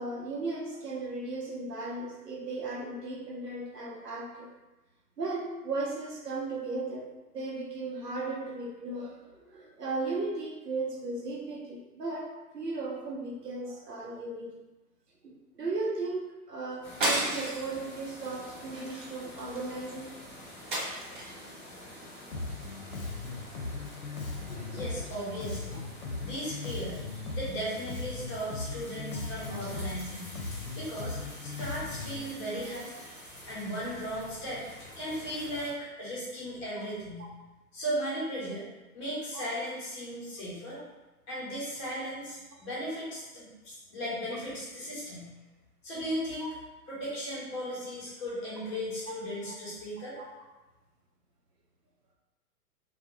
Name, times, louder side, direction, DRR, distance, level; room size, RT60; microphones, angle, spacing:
voice 1, 0.0-4.5 5.2-7.1 7.3-14.5 15.2-20.1 24.5-24.8 36.8-36.9 39.3-39.4 46.4-46.5 49.4-49.5 50.2-50.3, right 3 dB, 90° right, -1 dB, 0.7 m, -36 dB
sound 1, 16.8-35.7, left 1 dB, ahead, 0.9 m, -48 dB
sound 2, 17.0-17.8 18.2-18.4 18.7-19.7 20.7-21.5, right 1 dB, 35° right, 0.4 m, -32 dB
Bass guitar, 22.3-32.2, left 3 dB, 65° left, 0.6 m, -38 dB
voice 2, 24.7-25.8 26.2-27.1 27.3-30.3 30.8-32.9 33.5-34.6 35.0-37.3 37.7-38.7 38.9-40.8 41.3-45.3 45.8-46.5 46.9-50.2, equal, 20° left, -8 dB, 0.6 m, -36 dB
2.2 x 2.1 x 2.8 m, 1.1 s
figure-of-eight pair, 115°, 46 cm